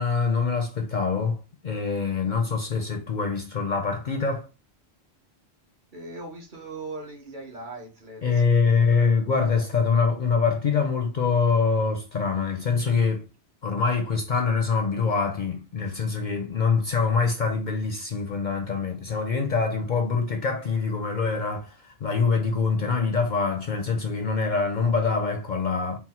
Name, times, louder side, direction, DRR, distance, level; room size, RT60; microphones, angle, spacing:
voice 1, 0.0-1.4 1.6-4.5 8.2-13.3 13.6-26.0, left 5 dB, 55° left, 0.6 m, -24 dB
voice 2, 5.9-9.1 13.8-14.0, right 2 dB, 45° right, 1.2 m, -40 dB
4.3 x 2.0 x 4.2 m
omnidirectional pair, 1.1 m